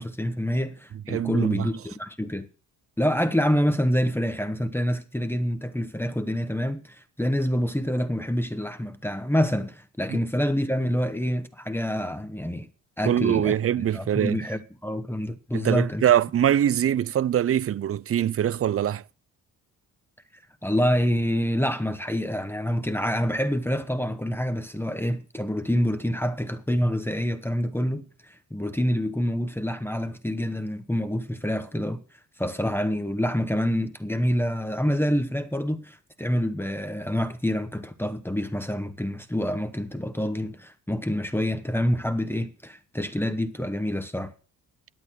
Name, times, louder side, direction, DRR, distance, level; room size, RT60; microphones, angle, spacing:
voice 1, 0.0-2.5 3.0-12.7 13.0-16.0 20.6-28.0 28.5-32.0 32.4-44.3, equal, 5° left, 1.3 m, -27 dB
voice 2, 1.1-1.7 10.1-10.2 13.0-14.4 15.5-19.0, right 10 dB, 35° right, 0.5 m, -23 dB
11.0 x 8.4 x 6.4 m
supercardioid pair, 60°, 39 cm